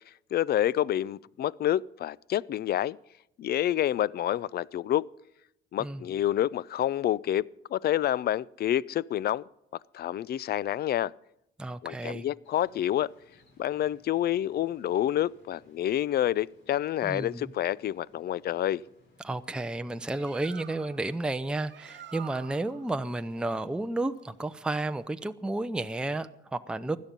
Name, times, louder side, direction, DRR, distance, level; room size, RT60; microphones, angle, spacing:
voice 1, 0.3-3.0 3.4-5.1 5.7-9.4 9.9-11.1 11.8-13.1 13.6-18.8, left 12 dB, 55° left, 0.4 m, -28 dB
voice 2, 11.6-12.2 17.0-17.4 19.2-27.0, right 2 dB, 5° right, 0.6 m, -32 dB
crickets-night-morocco-waves, 12.4-20.1, left 2 dB, 70° left, 5.9 m, -63 dB
Bird, 19.9-25.1, right 10 dB, 65° right, 0.9 m, -50 dB
16.5 x 11.5 x 5.3 m
cardioid pair, 90°, 20 cm